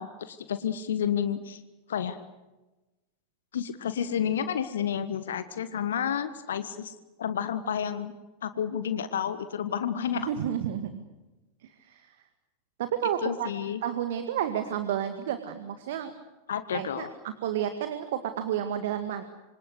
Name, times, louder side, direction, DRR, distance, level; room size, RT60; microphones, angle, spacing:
voice 1, 0.0-1.6 1.9-2.2 3.5-8.1 8.4-10.3 13.2-13.8 16.5-17.1, left 8 dB, 65° left, 11 dB, 1.4 m, -30 dB
voice 2, 10.2-11.0 11.9-12.0 12.8-13.5 13.8-16.1 16.7-19.2, right 10 dB, 55° right, 9 dB, 1.9 m, -31 dB
27.0 x 25.0 x 8.1 m, 1.1 s
figure-of-eight pair, 90°, 0 cm